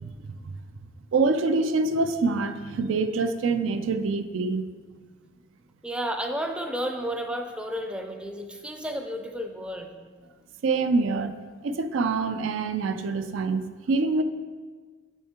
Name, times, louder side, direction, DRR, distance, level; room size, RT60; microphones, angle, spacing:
voice 1, 0.0-0.6 1.1-4.6 10.6-11.3 11.6-14.2, right 3 dB, 85° right, 9 dB, 0.4 m, -25 dB
voice 2, 5.8-9.9, equal, 5° right, 4 dB, 0.4 m, -32 dB
7.0 x 6.4 x 2.9 m, 1.5 s
head